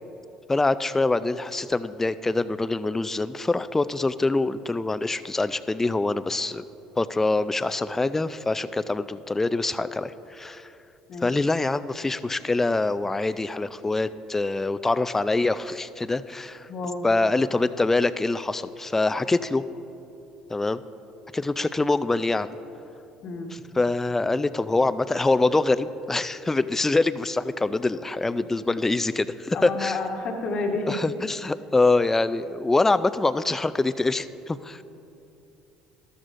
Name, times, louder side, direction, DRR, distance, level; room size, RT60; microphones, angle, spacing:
voice 1, 0.5-6.6 7.0-10.7 11.2-16.7 17.0-19.7 20.5-20.8 21.3-22.5 23.5-30.0 30.9-34.8, left 2 dB, 15° left, 14 dB, 0.4 m, -25 dB
voice 2, 16.7-17.1 23.2-23.5 29.5-31.0, left 3 dB, 55° left, 2 dB, 1.3 m, -30 dB
13.5 x 12.5 x 2.6 m, 2.8 s
hypercardioid pair, 70°, 2 cm